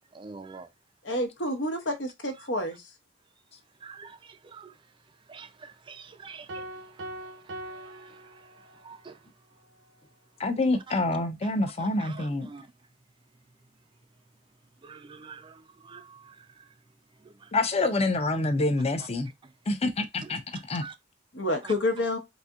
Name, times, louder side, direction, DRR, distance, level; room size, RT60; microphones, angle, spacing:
voice 1, 0.1-0.7 3.8-4.7 5.3-6.7 7.0-8.3 8.8-9.2 10.9-11.0 11.8-12.6 14.8-16.7 17.2-17.5 20.2-20.9 21.6-21.7, right 5 dB, 25° right, 0.3 m, -47 dB
voice 2, 1.0-2.8 21.3-22.2, left 1 dB, 75° left, 1.0 m, -28 dB
sound 1, 6.5-9.0, right 1 dB, 80° right, 0.6 m, -41 dB
voice 3, 10.4-12.5 17.5-19.3 19.7-20.4 20.7-20.8, left 2 dB, 35° left, 0.6 m, -26 dB
4.1 x 2.6 x 2.3 m
head